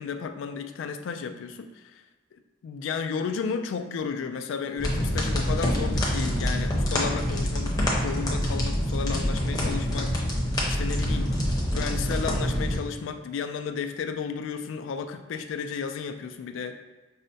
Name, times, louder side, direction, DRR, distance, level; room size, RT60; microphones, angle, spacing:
voice 1, 0.0-2.0 2.3-10.2 10.6-11.3 11.7-16.7, left 6 dB, 75° left, 7 dB, 0.3 m, -33 dB
sound 1, 4.8-12.8, equal, 20° left, 0.7 m, -26 dB
5.4 x 2.1 x 2.6 m, 1.2 s
head